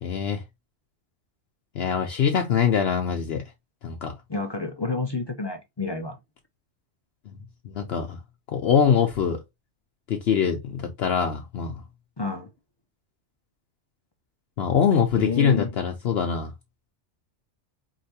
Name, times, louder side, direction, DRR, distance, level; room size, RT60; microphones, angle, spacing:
voice 1, 0.0-0.4 1.7-3.4 3.8-4.1 7.6-8.2 8.5-9.4 10.1-11.8 14.6-16.5, left 7 dB, 65° left, 0.9 m, -23 dB
voice 2, 4.3-6.2 12.2-12.5 15.2-15.7, left 4 dB, 35° left, 0.4 m, -29 dB
4.6 x 3.3 x 2.8 m
omnidirectional pair, 1.2 m